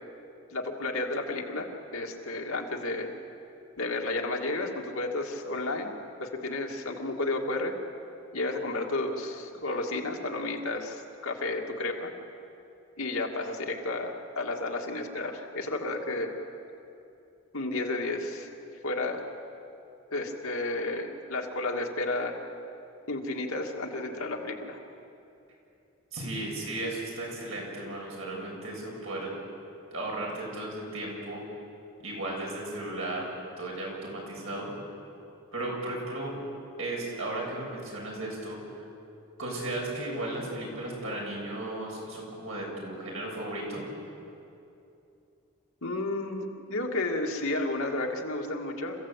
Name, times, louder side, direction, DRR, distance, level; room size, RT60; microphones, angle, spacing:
voice 1, 0.5-1.7 1.9-3.1 3.8-5.9 6.2-7.7 8.3-12.1 13.0-16.4 17.5-18.5 18.8-19.2 20.1-22.4 23.1-24.8 45.8-49.1, left 2 dB, 80° left, 1 dB, 2.4 m, -32 dB
voice 2, 26.1-29.3 29.9-31.5 32.0-34.7 35.5-36.3 36.8-38.6 39.4-43.8, right 1 dB, 75° right, -2 dB, 7.4 m, -35 dB
28.0 x 16.0 x 8.4 m, 2.8 s
head